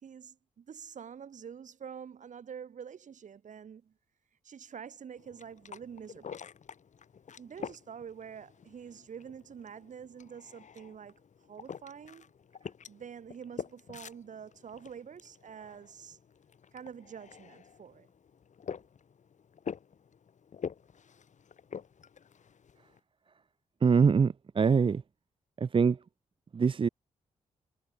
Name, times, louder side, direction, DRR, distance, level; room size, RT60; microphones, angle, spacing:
voice 1, 0.0-3.9 4.4-6.4 7.4-11.2 11.5-12.3 12.9-16.2 16.7-18.1, right 7 dB, 65° right, 3.4 m, -46 dB
sound 1, 5.2-23.0, left 7 dB, 65° left, 5.7 m, -47 dB
voice 2, 23.8-25.0 25.6-26.0 26.5-26.9, right 5 dB, 40° right, 0.6 m, -24 dB
cardioid pair, 70°, 14 cm